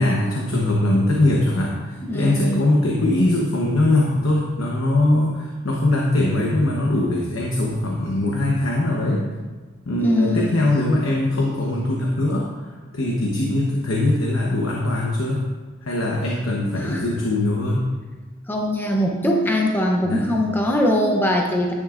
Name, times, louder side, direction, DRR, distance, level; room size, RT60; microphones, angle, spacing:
voice 1, 0.0-9.2 9.9-12.5 12.9-15.4 15.8-17.9 20.0-20.3, left 1 dB, 75° left, -2 dB, 1.0 m, -21 dB
voice 2, 2.0-2.8 10.0-10.7 16.8-17.0 18.5-21.7, left 1 dB, 10° left, 0 dB, 0.7 m, -22 dB
10.5 x 8.8 x 2.5 m, 1.3 s
head